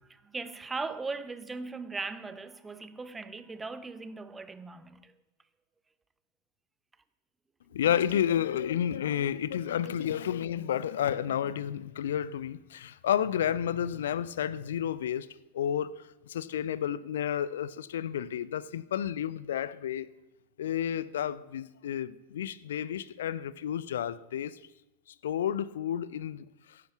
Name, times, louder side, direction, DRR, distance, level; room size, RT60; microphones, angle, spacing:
voice 1, 0.1-5.2, right 3 dB, 10° right, 0.7 m, -39 dB
voice 2, 7.7-15.3 15.5-20.1 20.6-24.6 25.2-26.8, left 9 dB, 60° left, 0.4 m, -31 dB
14.5 x 11.0 x 5.8 m
figure-of-eight pair, 90°, 0 cm